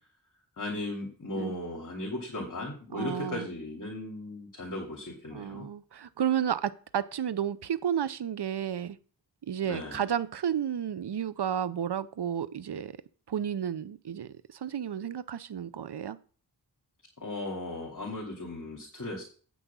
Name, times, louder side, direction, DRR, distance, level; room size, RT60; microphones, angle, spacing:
voice 1, 0.6-5.7 9.6-10.0 17.2-19.2, left 2 dB, 45° left, -1 dB, 2.7 m, -37 dB
voice 2, 2.9-3.5 5.3-9.0 9.5-12.9 13.3-16.2, right 9 dB, 70° right, 16 dB, 0.8 m, -32 dB
8.5 x 6.2 x 7.0 m, 0.42 s
wide cardioid pair, 60°, 42 cm